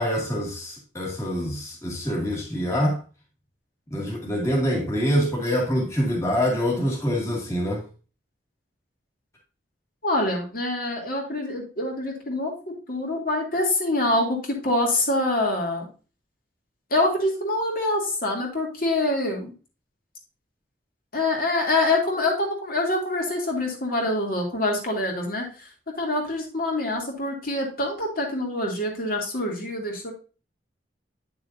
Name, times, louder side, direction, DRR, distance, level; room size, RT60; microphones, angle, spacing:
voice 1, 0.0-3.0 3.9-7.9, equal, 15° left, 2.1 m, -25 dB
voice 2, 10.0-15.9 16.9-19.5 21.1-25.7 26.0-30.1, left 2 dB, 50° left, 2.8 m, -25 dB
9.2 x 6.7 x 2.6 m
head